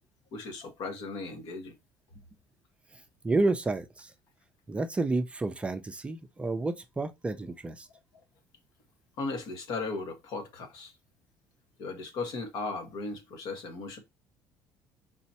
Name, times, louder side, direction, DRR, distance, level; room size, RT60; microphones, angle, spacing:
voice 1, 0.3-1.7 7.9-8.0 9.2-10.9 11.8-14.0, left 3 dB, 65° left, 1.4 m, -37 dB
voice 2, 3.2-4.1 4.7-7.9, right 2 dB, 15° right, 0.5 m, -30 dB
4.2 x 4.1 x 2.9 m
cardioid pair, 125°, 7 cm